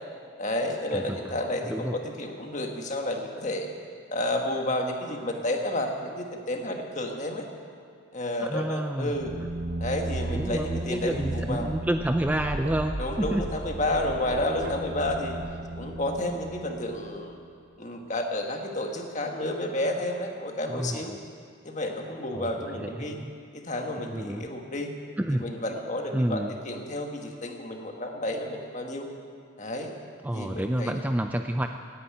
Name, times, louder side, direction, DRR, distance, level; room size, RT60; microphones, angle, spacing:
voice 1, 0.4-3.7 4.1-7.4 8.1-9.3 9.8-11.7 13.0-15.4 15.8-17.4 17.8-21.2 21.6-23.2 23.5-24.9 25.4-29.1 29.6-29.9 30.3-30.9, left 1 dB, 35° left, 3 dB, 1.6 m, -31 dB
voice 2, 0.9-1.4 1.7-2.0 8.4-9.1 10.3-13.4 20.7-21.2 22.3-23.3 24.1-24.5 25.2-25.5 26.1-26.6 30.2-31.7, right 1 dB, 10° right, 6 dB, 0.3 m, -29 dB
sound 1, 9.1-17.6, right 2 dB, 50° right, 0.7 m, -35 dB
17.0 x 9.7 x 8.6 m, 2.3 s
head